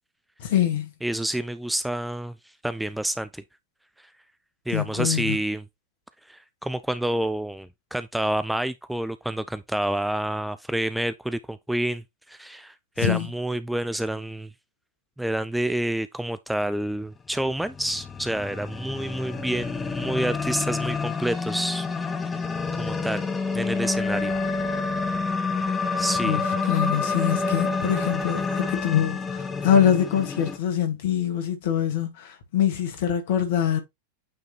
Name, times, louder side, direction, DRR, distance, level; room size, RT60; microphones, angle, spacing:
voice 1, 0.4-0.9 4.7-5.4 13.0-13.3 26.2-33.8, left 9 dB, 55° left, 1.9 m, -24 dB
voice 2, 1.0-2.4 2.6-3.4 4.0-4.1 4.7-5.6 6.3-14.5 15.2-22.5 22.7-23.3 23.5-24.4 26.0-26.6, right 1 dB, 5° right, 0.4 m, -28 dB
sound 1, 17.5-30.6, left 4 dB, 15° left, 0.8 m, -28 dB
8.7 x 3.6 x 3.1 m
figure-of-eight pair, 90°, 0 cm